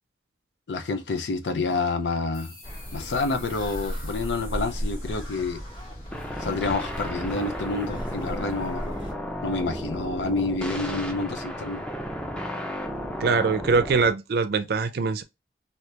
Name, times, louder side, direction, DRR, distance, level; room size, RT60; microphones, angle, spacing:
voice 1, 0.7-2.5 2.9-5.6 6.4-8.9 9.4-11.8, left 3 dB, 90° left, 0.6 m, -28 dB
sound 1, 2.3-7.5, left 2 dB, 55° left, 1.3 m, -49 dB
sound 2, 2.6-9.1, equal, 30° left, 1.3 m, -36 dB
sound 3, 6.1-14.1, equal, 5° left, 0.5 m, -33 dB
voice 2, 13.2-15.2, right 4 dB, 60° right, 0.4 m, -23 dB
2.8 x 2.7 x 3.3 m
head